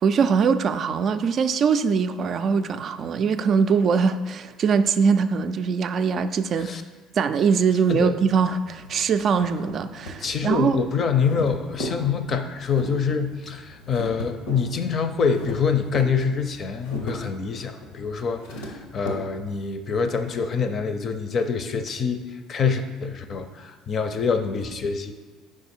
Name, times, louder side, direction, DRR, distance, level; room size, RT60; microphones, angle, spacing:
voice 1, 0.0-6.7 7.2-10.8, right 6 dB, 50° right, 10 dB, 0.3 m, -22 dB
sound 1, 8.4-19.1, equal, 90° left, 0.9 m, -38 dB
voice 2, 10.2-25.1, left 5 dB, 50° left, 8 dB, 0.6 m, -25 dB
4.8 x 4.7 x 4.4 m, 1.3 s
hypercardioid pair, 70°, 0 cm